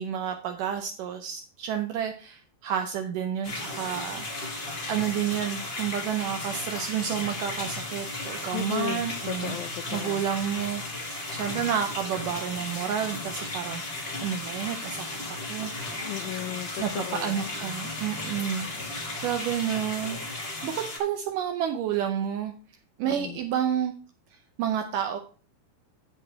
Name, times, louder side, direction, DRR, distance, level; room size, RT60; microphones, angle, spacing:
voice 1, 0.0-9.6 9.9-10.8 11.3-15.7 16.8-22.5 23.0-23.9 24.3-25.2, right 9 dB, 90° right, 5 dB, 1.8 m, -30 dB
sound 1, 3.4-21.0, left 2 dB, 65° left, 0.6 m, -35 dB
voice 2, 8.5-10.2 16.1-17.4 23.0-23.4, left 13 dB, 85° left, 10 dB, 2.0 m, -35 dB
10.0 x 8.1 x 3.5 m, 0.39 s
omnidirectional pair, 4.7 m